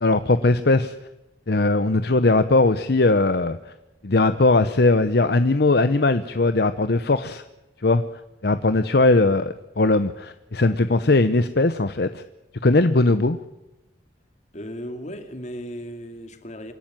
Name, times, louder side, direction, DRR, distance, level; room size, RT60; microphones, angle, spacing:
voice 1, 0.0-0.9 1.5-3.6 4.0-7.4 7.8-8.0 8.4-12.2 12.6-13.4, left 2 dB, 60° left, 11 dB, 0.8 m, -19 dB
voice 2, 14.5-16.7, equal, 40° left, 6 dB, 2.5 m, -36 dB
26.5 x 12.0 x 9.1 m, 1.0 s
head